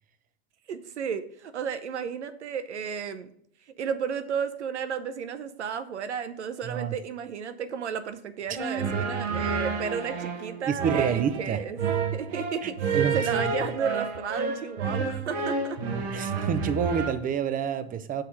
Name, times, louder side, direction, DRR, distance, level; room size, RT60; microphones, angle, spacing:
voice 1, 0.7-3.3 3.8-11.8 12.1-15.8, right 7 dB, 90° right, 12 dB, 0.7 m, -33 dB
sound 1, 8.6-17.1, right 5 dB, 60° right, 1.4 m, -29 dB
voice 2, 10.7-11.6 12.6-13.2 16.1-18.2, right 7 dB, 25° right, 12 dB, 0.6 m, -28 dB
6.5 x 4.1 x 6.2 m, 0.66 s
hypercardioid pair, 95°, 33 cm